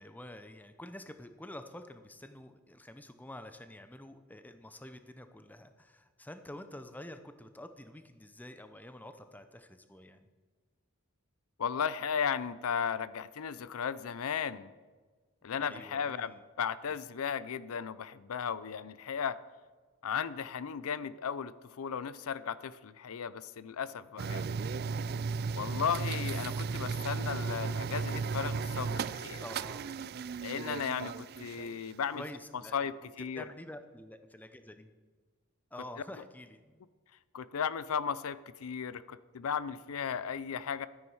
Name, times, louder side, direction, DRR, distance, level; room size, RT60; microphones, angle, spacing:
voice 1, 0.0-10.3 15.6-16.4 29.4-29.9 32.1-33.1 33.3-34.9 35.7-36.8, left 1 dB, 10° left, 9 dB, 0.6 m, -48 dB
voice 2, 11.6-14.7 15.4-19.4 20.0-24.5 25.5-29.4 30.4-32.2 32.7-33.5 37.3-40.9, left 7 dB, 80° left, 17 dB, 0.5 m, -35 dB
sound 1, 24.2-31.8, right 5 dB, 45° right, 0.3 m, -35 dB
13.0 x 9.7 x 4.7 m, 1.4 s
head